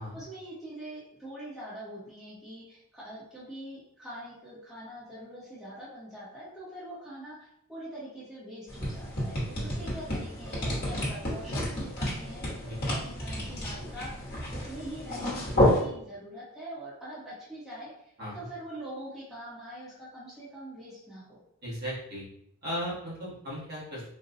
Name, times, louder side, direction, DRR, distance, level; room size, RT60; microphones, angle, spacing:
voice 1, 0.0-12.4 12.8-21.4, right 1 dB, ahead, -10 dB, 0.9 m, -43 dB
sound 1, 8.7-15.8, left 1 dB, 45° left, 1.1 m, -30 dB
voice 2, 21.6-22.3 22.6-24.0, equal, 45° right, -7 dB, 1.2 m, -36 dB
4.0 x 2.2 x 2.6 m, 0.71 s
head